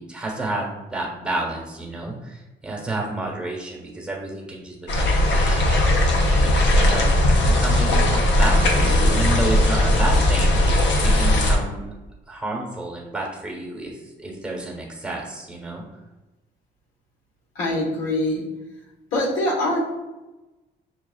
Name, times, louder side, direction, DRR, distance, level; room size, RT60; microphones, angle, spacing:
voice 1, 0.0-5.8 6.3-7.1 7.4-10.6 11.0-11.9 12.3-15.8, right 2 dB, 5° right, -2 dB, 1.1 m, -30 dB
sound 1, 4.9-11.6, left 1 dB, 65° left, 0.8 m, -18 dB
voice 2, 17.5-18.5 19.1-19.8, left 1 dB, 85° left, -3 dB, 1.3 m, -23 dB
7.0 x 2.4 x 2.3 m, 1.1 s
cardioid pair, 90°, 20 cm